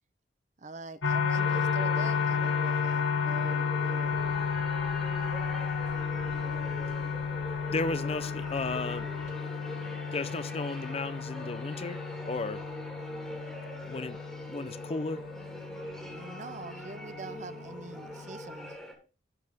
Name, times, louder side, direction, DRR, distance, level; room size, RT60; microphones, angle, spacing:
voice 1, 0.6-4.1 16.0-18.8, right 3 dB, 40° right, 0.7 m, -44 dB
sound 1, 1.0-18.7, left 6 dB, 80° left, 1.0 m, -33 dB
sound 2, 1.3-18.9, equal, ahead, 3.2 m, -43 dB
sound 3, 4.0-9.3, equal, 75° right, 4.9 m, -53 dB
voice 2, 7.7-9.1 10.1-12.6 13.8-14.2 14.5-15.2, left 3 dB, 30° left, 0.5 m, -34 dB
16.0 x 5.4 x 3.5 m
head